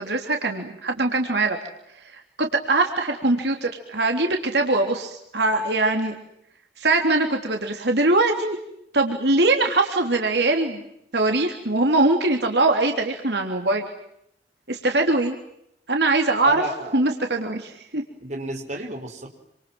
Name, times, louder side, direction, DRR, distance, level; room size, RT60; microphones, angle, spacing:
voice 1, 0.0-1.6 2.1-6.1 6.8-8.6 8.9-10.8 11.1-13.8 14.7-15.3 15.9-16.6 16.9-18.0, right 2 dB, 70° right, 3 dB, 3.4 m, -22 dB
voice 2, 16.5-17.1 18.2-19.3, right 2 dB, 40° right, 3 dB, 5.5 m, -32 dB
28.0 x 27.0 x 7.8 m, 0.77 s
head